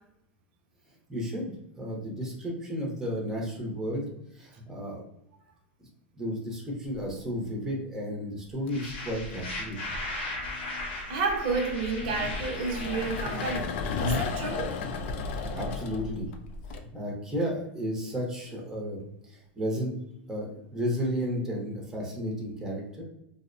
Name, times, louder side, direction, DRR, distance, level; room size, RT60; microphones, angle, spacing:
voice 1, 1.1-4.1 4.3-5.0 5.8-5.9 6.2-9.8 15.3-16.3 16.9-19.0 19.3-19.9 20.3-23.0, equal, 5° right, -2 dB, 0.6 m, -33 dB
sound 1, 6.9-7.4 8.5-16.8, left 4 dB, 70° left, 0.3 m, -35 dB
sound 2, 8.7-13.6, left 2 dB, 85° left, 0.9 m, -37 dB
voice 2, 11.1-14.7, right 4 dB, 55° right, 3 dB, 0.6 m, -31 dB
2.5 x 2.0 x 2.5 m, 0.82 s
supercardioid pair, 140°, 6 cm